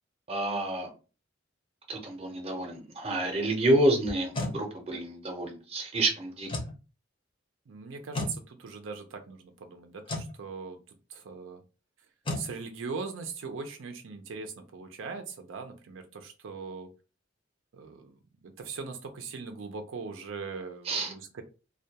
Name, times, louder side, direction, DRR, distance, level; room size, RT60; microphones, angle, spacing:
voice 1, 0.3-0.9 1.9-6.5 20.9-21.1, right 1 dB, 30° right, 2 dB, 0.6 m, -28 dB
sound 1, 4.1-4.6 6.4-6.8 8.1-8.4 10.0-10.3 12.2-12.5, left 2 dB, 25° left, 0.5 m, -33 dB
voice 2, 7.7-10.8 11.1-11.6 12.3-16.9 17.7-18.2 18.4-21.4, right 4 dB, 85° right, 6 dB, 0.5 m, -40 dB
2.2 x 2.2 x 2.8 m, 0.34 s
head